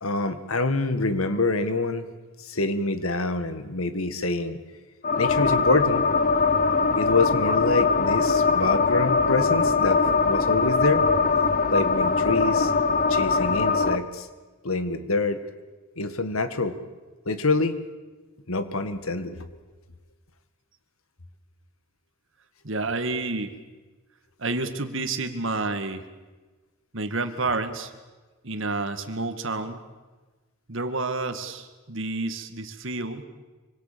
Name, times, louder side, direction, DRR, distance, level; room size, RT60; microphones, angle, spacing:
voice 1, 0.0-2.1 2.5-4.6 5.2-6.1 7.0-11.1 11.7-12.7 13.1-14.3 14.6-15.4 16.0-16.8 17.3-17.8 18.5-19.4, left 3 dB, 80° left, 10 dB, 1.9 m, -26 dB
sound 1, 5.0-14.0, left 4 dB, 40° left, 1.0 m, -22 dB
voice 2, 22.6-23.6 24.4-26.1 26.9-27.9 28.4-29.8 30.7-33.2, right 3 dB, 65° right, 9 dB, 2.0 m, -29 dB
25.5 x 25.0 x 6.9 m, 1.3 s
head